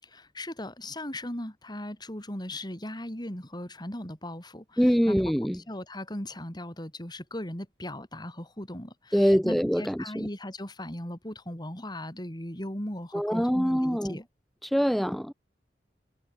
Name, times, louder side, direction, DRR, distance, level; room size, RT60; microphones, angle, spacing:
voice 1, 0.0-5.2 5.5-14.3, left 1 dB, 25° left, 5.2 m, -38 dB
voice 2, 4.8-5.6 9.1-10.3 13.1-14.2 14.6-15.3, equal, ahead, 0.8 m, -24 dB
head